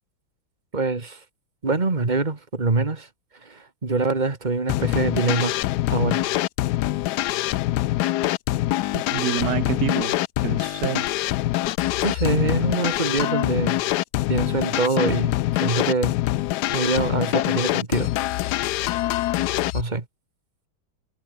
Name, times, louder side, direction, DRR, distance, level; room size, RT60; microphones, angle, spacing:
voice 1, 0.7-1.2 1.6-3.1 3.4-5.6 5.9-6.3 12.0-13.8 14.3-15.4 15.6-16.2 16.7-18.1 19.7-20.1, right 3 dB, 20° right, 2.1 m, -24 dB
sound 1, 4.7-19.8, left 16 dB, 85° left, 0.9 m, -24 dB
voice 2, 8.9-10.1 10.4-11.1, right 11 dB, 60° right, 1.1 m, -27 dB
omnidirectional pair, 2.3 m